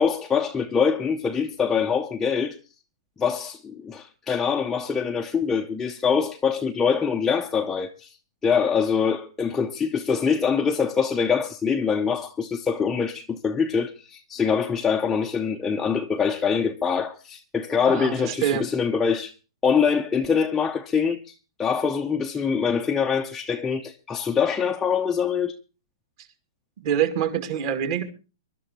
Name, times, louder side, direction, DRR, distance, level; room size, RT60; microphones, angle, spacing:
voice 1, 0.0-2.6 3.2-8.2 8.4-19.3 19.6-21.3 21.6-25.5, left 6 dB, 10° left, 0.7 m, -24 dB
voice 2, 17.9-18.7 26.8-28.0, right 9 dB, 40° right, 2.2 m, -25 dB
24.0 x 12.0 x 2.9 m
hypercardioid pair, 165°, 3 cm